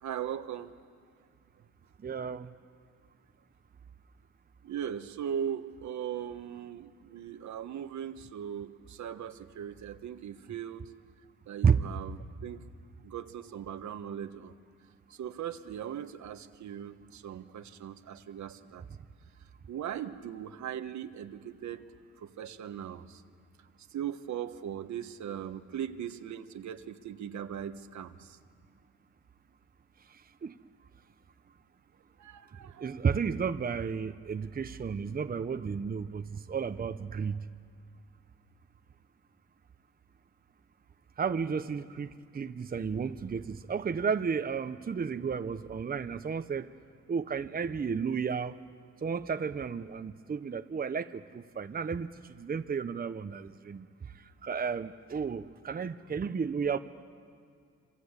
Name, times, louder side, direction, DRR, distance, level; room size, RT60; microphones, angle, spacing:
voice 1, 0.0-0.7 4.6-10.8 11.5-12.6 13.0-14.5 15.1-18.8 19.7-21.8 22.2-23.2 23.9-28.4 32.2-33.0, right 9 dB, 70° right, 8 dB, 1.4 m, -39 dB
voice 2, 2.0-2.5 11.6-11.8 30.1-30.6 32.8-37.4 41.2-46.7 47.1-48.6 49.0-54.1 54.4-56.8, right 6 dB, 30° right, 9 dB, 0.9 m, -32 dB
27.0 x 25.5 x 8.3 m, 2.2 s
cardioid pair, 90°, 30 cm